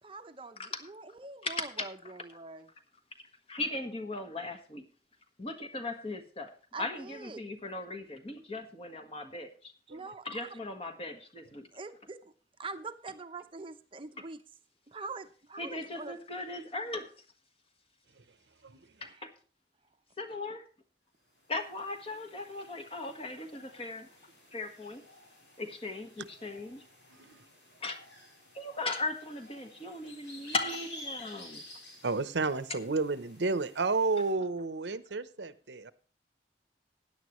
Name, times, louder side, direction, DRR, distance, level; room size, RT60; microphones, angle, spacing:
voice 1, 0.0-2.7 6.7-7.4 9.9-10.6 11.7-12.3 12.6-14.4 14.9-16.2 19.0-19.2, right 3 dB, 30° right, 0.7 m, -44 dB
voice 2, 1.4-1.9 3.5-4.9 5.4-6.5 6.8-9.7 10.2-11.7 15.6-17.1 19.0-19.3 20.2-20.6 21.5-24.1 24.5-25.0 25.6-26.8 27.8-28.0 28.5-31.6, left 2 dB, 30° left, 1.4 m, -38 dB
sound 1, 21.3-34.3, left 1 dB, 80° left, 5.0 m, -52 dB
voice 3, 32.0-35.9, right 3 dB, 80° right, 0.8 m, -31 dB
16.0 x 9.9 x 3.1 m
head